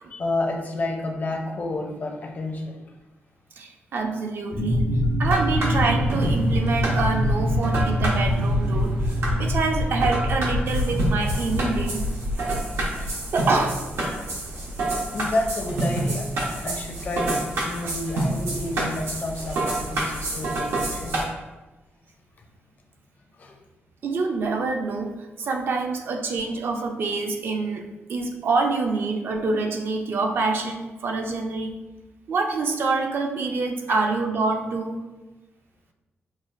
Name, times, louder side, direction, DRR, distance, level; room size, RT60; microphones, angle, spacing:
voice 1, 0.1-2.8 13.0-13.1 15.1-16.3 16.6-21.3 23.4-23.6 33.9-34.0, left 2 dB, 40° left, 2 dB, 0.5 m, -30 dB
voice 2, 3.6-4.9 5.2-12.1 13.3-13.8 17.8-18.0 24.0-25.1 25.4-31.7 32.3-35.0, right 3 dB, 60° right, 3 dB, 0.5 m, -26 dB
sound 1, 4.5-13.1, left 1 dB, 90° left, 1.1 m, -24 dB
sound 2, 5.2-21.2, right 2 dB, 85° right, 1.0 m, -29 dB
6.0 x 2.3 x 2.6 m, 1.1 s
wide cardioid pair, 145°, 4 cm